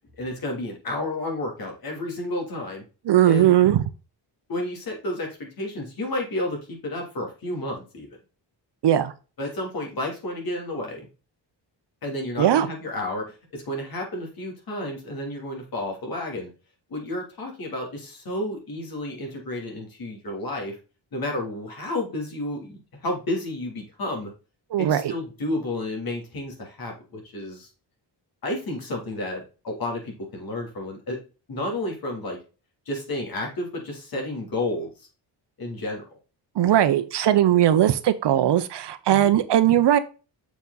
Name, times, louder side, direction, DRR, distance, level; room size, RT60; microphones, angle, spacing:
voice 1, 0.2-2.8 3.3-3.5 4.5-8.1 9.4-11.1 12.0-16.5 16.9-20.8 21.1-24.3 24.8-27.7 28.4-31.2 31.5-32.4 32.9-35.1 35.6-36.1 39.1-39.3, left 1 dB, 50° left, 0 dB, 3.0 m, -31 dB
voice 2, 3.1-3.8 8.8-9.1 12.4-12.7 24.7-25.1 36.6-40.0, right 11 dB, 65° right, 12 dB, 0.8 m, -19 dB
6.8 x 5.0 x 4.0 m, 0.33 s
wide cardioid pair, 170°, 44 cm